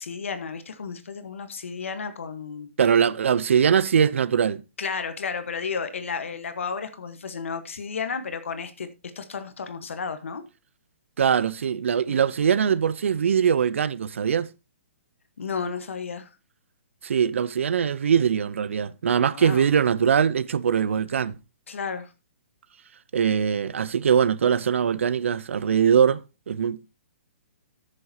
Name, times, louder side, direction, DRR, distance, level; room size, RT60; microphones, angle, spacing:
voice 1, 0.0-2.7 4.8-8.9 9.1-10.4 12.1-12.2 15.4-16.4 19.3-19.7 21.7-22.1, left 5 dB, 80° left, 1.1 m, -32 dB
voice 2, 2.8-4.6 11.2-14.5 17.0-21.4 23.1-26.9, right 7 dB, 75° right, 0.5 m, -22 dB
14.5 x 6.6 x 2.8 m
hypercardioid pair, 145°, 7 cm